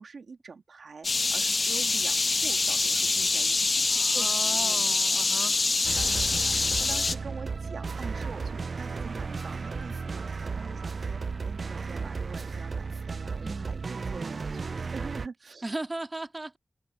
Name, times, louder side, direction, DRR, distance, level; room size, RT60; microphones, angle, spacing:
voice 1, 0.0-3.9 4.1-5.3 6.0-6.5 6.8-15.7, right 4 dB, 90° right, 3.1 m, -45 dB
sound 1, 1.0-7.2, left 3 dB, 60° left, 1.2 m, -25 dB
voice 2, 3.9-5.7 13.4-13.8 15.6-16.6, right 2 dB, 35° right, 3.5 m, -37 dB
sound 2, 5.8-15.3, right 4 dB, 75° right, 0.5 m, -34 dB
cardioid pair, 55°, 0 cm